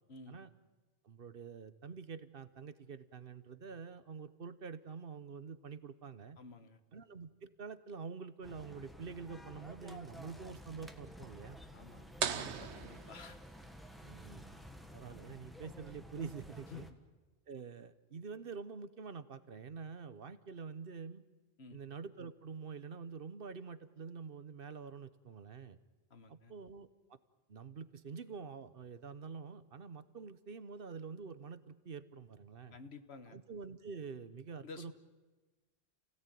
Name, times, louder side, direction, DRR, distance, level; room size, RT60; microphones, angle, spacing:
voice 1, 0.1-0.4 6.4-6.8 11.7-13.4 16.7-16.9 21.6-21.8 26.1-26.5 32.7-33.4 34.6-34.9, left 4 dB, 75° left, 9 dB, 1.5 m, -52 dB
voice 2, 1.0-6.4 6.9-11.6 14.0-14.6 14.9-16.9 17.5-21.2 21.7-25.8 26.3-27.2 27.5-32.8 33.3-34.9, right 5 dB, 60° right, 13 dB, 1.1 m, -47 dB
sound 1, 8.4-16.9, equal, ahead, 1.4 m, -52 dB
sound 2, 12.2-13.9, right 7 dB, 90° right, 1.2 m, -39 dB
28.5 x 17.0 x 9.3 m, 1.2 s
omnidirectional pair, 1.1 m